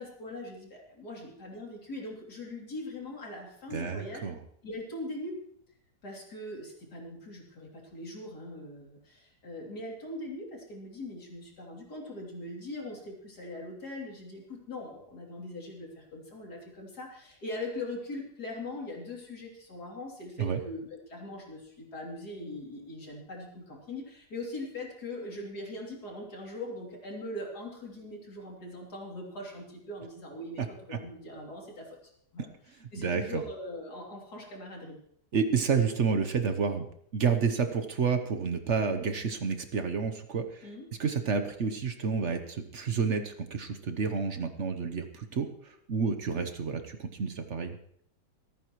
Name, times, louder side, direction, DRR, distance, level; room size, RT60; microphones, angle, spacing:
voice 1, 0.0-4.2 4.6-5.4 6.0-30.6 30.9-32.0 32.3-32.5 32.9-35.0 40.6-40.9, left 1 dB, 85° left, -2 dB, 3.6 m, -41 dB
voice 2, 3.7-4.4 20.4-20.6 32.8-33.4 35.3-36.9 37.1-40.7 41.0-47.8, right 5 dB, 50° right, 7 dB, 1.2 m, -30 dB
26.5 x 9.2 x 3.1 m, 0.67 s
omnidirectional pair, 1.7 m